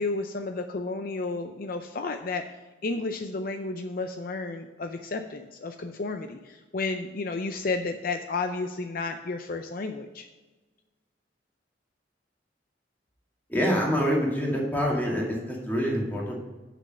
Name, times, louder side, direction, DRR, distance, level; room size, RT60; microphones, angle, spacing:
voice 1, 0.0-2.4 2.8-10.3, left 3 dB, 50° left, 7 dB, 0.5 m, -32 dB
voice 2, 13.5-16.4, equal, 10° left, -3 dB, 2.2 m, -26 dB
7.6 x 6.4 x 5.5 m, 1.2 s
head